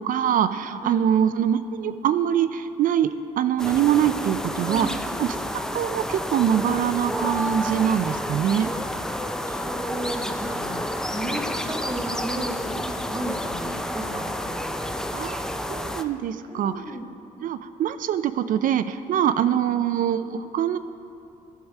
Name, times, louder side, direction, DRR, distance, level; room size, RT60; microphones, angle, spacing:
voice 1, 0.0-4.9 5.2-8.7 15.1-17.0 17.4-20.8, right 9 dB, 60° right, 12 dB, 0.4 m, -24 dB
sound 1, 3.6-16.0, equal, 5° left, 0.5 m, -30 dB
voice 2, 9.4-12.6 13.0-14.8 16.5-17.1 19.4-19.6, right 1 dB, 20° right, 0 dB, 1.6 m, -34 dB
11.5 x 4.7 x 6.5 m, 2.5 s
supercardioid pair, 75°, 16 cm